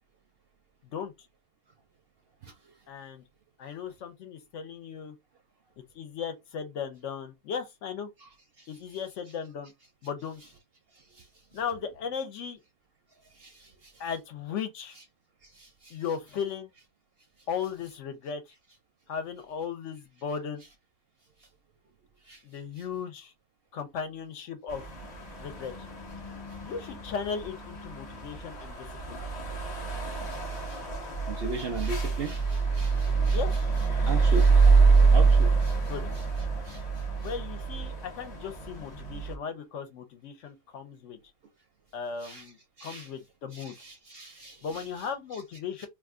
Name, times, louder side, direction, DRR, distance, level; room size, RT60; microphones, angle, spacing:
voice 1, 2.9-3.2 3.6-5.1 5.9-8.1 8.7-9.7 10.0-10.4 11.5-12.6 14.0-15.0 15.9-16.7 17.5-18.4 19.1-20.6 22.4-23.3 23.7-24.8 25.4-25.7 26.6-29.2 33.3-33.6 35.8-36.0 37.2-41.2 41.9-43.7 44.6-45.9, left 6 dB, 65° left, 0.9 m, -36 dB
voice 2, 15.6-15.9 22.3-22.4 30.3-30.4 30.7-30.8 31.3-33.4 34.1-34.7 35.1-35.8 36.7-36.8 42.2-42.5 42.8-43.1 43.5-44.8, right 4 dB, 60° right, 0.7 m, -38 dB
sound 1, 24.7-39.3, right 4 dB, 35° left, 0.7 m, -26 dB
2.6 x 2.4 x 3.5 m
omnidirectional pair, 1.5 m